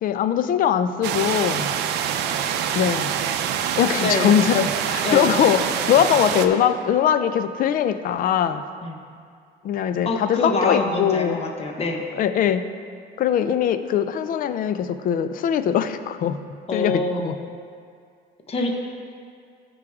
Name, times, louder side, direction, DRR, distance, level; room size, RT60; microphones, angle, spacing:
voice 1, 0.0-1.7 2.7-3.2 3.8-8.6 9.6-11.4 12.2-12.6 13.2-16.4 16.7-17.4, left 9 dB, 55° left, 11 dB, 0.5 m, -21 dB
sound 1, 1.0-6.5, right 8 dB, 80° right, 0.5 m, -25 dB
voice 2, 4.0-4.3 5.0-5.3 8.8-9.0 10.0-12.0 16.7-17.6 18.5-18.8, left 3 dB, 35° left, 2 dB, 1.1 m, -25 dB
14.0 x 4.9 x 3.6 m, 2.2 s
cardioid pair, 110°, 17 cm